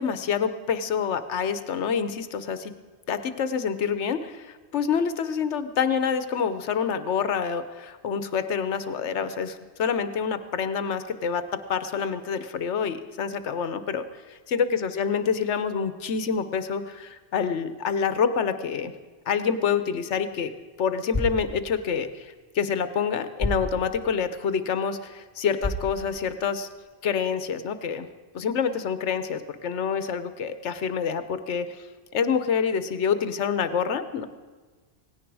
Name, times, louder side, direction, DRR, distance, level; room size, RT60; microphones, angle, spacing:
voice 1, 0.0-2.7 3.1-11.4 11.7-18.9 19.3-20.5 20.8-26.7 27.0-28.1 28.3-31.9 32.1-34.3, left 6 dB, 85° left, 11 dB, 1.2 m, -27 dB
sound 1, 19.9-26.8, left 1 dB, 5° right, 3.1 m, -36 dB
18.0 x 16.5 x 4.8 m, 1.4 s
omnidirectional pair, 1.2 m